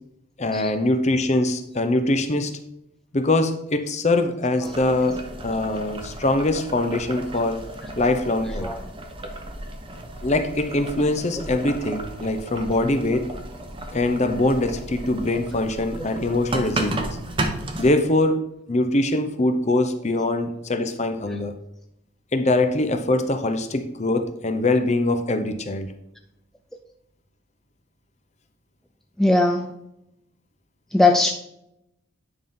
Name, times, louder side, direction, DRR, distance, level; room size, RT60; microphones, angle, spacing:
voice 1, 0.4-2.5 3.1-5.2 5.4-7.6 8.0-8.7 10.2-13.3 13.9-17.2 17.8-18.4 18.7-21.5 22.3-25.9, left 2 dB, 35° left, 8 dB, 0.7 m, -23 dB
Boiling, 4.6-17.9, right 1 dB, 25° right, 0.8 m, -34 dB
voice 2, 29.2-29.7 30.9-31.3, left 2 dB, ahead, 3 dB, 0.3 m, -19 dB
9.9 x 5.5 x 3.7 m, 0.81 s
head